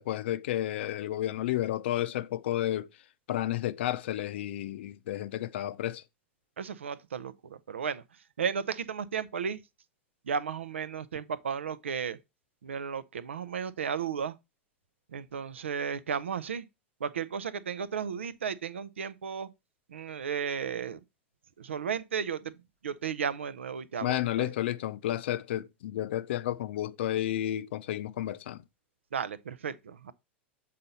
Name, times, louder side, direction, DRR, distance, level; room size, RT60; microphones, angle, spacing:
voice 1, 0.0-2.9 3.3-6.0 24.0-28.6, left 13 dB, 65° left, 0.5 m, -31 dB
voice 2, 6.6-8.0 8.4-9.6 10.3-12.2 12.6-14.3 15.1-16.6 17.0-19.5 19.9-21.0 21.6-22.5 22.8-24.5 29.1-30.1, right 7 dB, 80° right, 0.6 m, -34 dB
7.5 x 4.2 x 4.1 m
hypercardioid pair, 95°, 6 cm